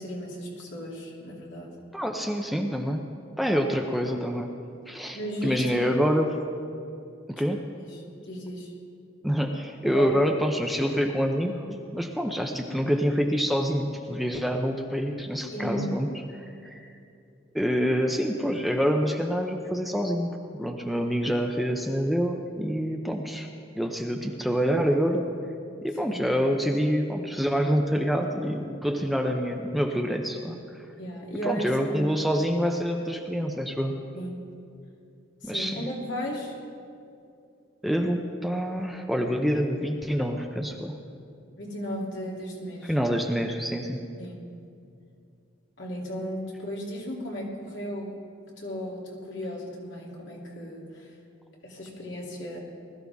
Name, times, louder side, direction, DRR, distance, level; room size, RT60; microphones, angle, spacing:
voice 1, 0.0-1.7 5.1-5.9 7.8-7.9 8.2-8.7 9.9-10.2 15.5-15.9 26.0-26.3 31.0-32.0 34.1-34.3 35.4-36.5 41.6-42.9 44.2-44.3 45.8-48.1 48.6-51.1 51.6-52.6, equal, 70° left, -3 dB, 3.0 m, -35 dB
voice 2, 1.9-3.0 3.4-4.5 4.9-6.3 7.3-7.6 9.2-16.9 17.5-23.5 23.8-25.3 25.8-30.6 31.4-34.0 35.4-35.8 37.8-41.0 42.8-44.0, equal, ahead, 2 dB, 0.7 m, -26 dB
20.0 x 13.5 x 3.6 m, 2.5 s
head